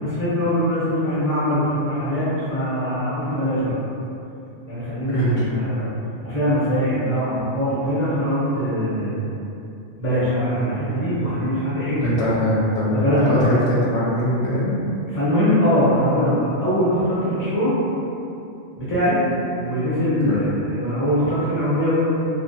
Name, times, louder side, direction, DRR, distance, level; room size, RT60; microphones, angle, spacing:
voice 1, 0.0-3.7 4.7-5.9 6.2-9.2 10.0-12.0 12.9-13.4 15.1-17.8 18.8-19.2 19.6-22.0, equal, 15° left, -11 dB, 0.6 m, -22 dB
voice 2, 5.1-5.5 12.0-14.8 20.3-20.4, equal, 75° left, -7 dB, 0.8 m, -22 dB
2.3 x 2.2 x 2.7 m, 2.7 s
omnidirectional pair, 1.2 m